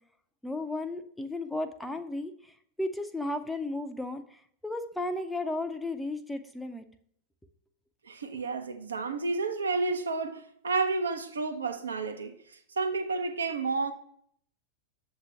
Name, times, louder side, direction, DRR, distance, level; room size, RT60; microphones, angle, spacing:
voice 1, 0.4-2.3 2.8-4.2 4.6-6.8, left 2 dB, 5° left, 0.5 m, -34 dB
voice 2, 8.1-12.3 12.8-13.9, right 4 dB, 70° right, 0.7 m, -30 dB
7.4 x 2.9 x 5.6 m
figure-of-eight pair, 90°, 0 cm